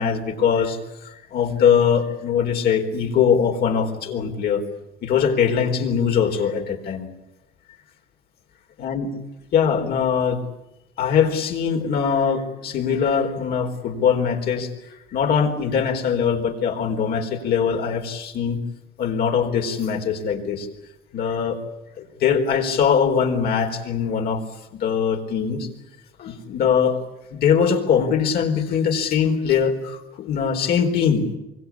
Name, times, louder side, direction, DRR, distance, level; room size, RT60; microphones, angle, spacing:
voice 1, 0.0-4.6 5.0-7.1 8.8-9.1 9.5-10.4 11.0-14.7 15.1-18.6 19.0-20.7 21.1-21.6 22.0-24.4 24.7-25.7 26.2-27.0 27.3-31.3, left 7 dB, 70° left, 3 dB, 4.4 m, -21 dB
25.0 x 23.0 x 8.6 m, 0.96 s
cardioid pair, 110°, 17 cm